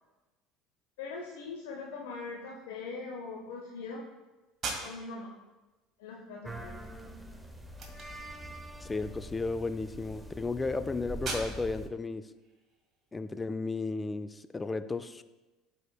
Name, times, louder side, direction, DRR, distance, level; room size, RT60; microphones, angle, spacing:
voice 1, 1.0-4.0 4.8-5.3 6.0-6.8, left 4 dB, 70° left, -1 dB, 0.8 m, -41 dB
sound 1, 4.5-13.5, right 3 dB, 40° right, 1.7 m, -44 dB
sound 2, 6.4-11.9, equal, 5° right, 0.7 m, -44 dB
voice 2, 8.8-12.3 13.1-15.2, left 3 dB, 20° left, 12 dB, 0.4 m, -34 dB
12.0 x 4.9 x 2.3 m, 1.1 s
figure-of-eight pair, 65°, 0 cm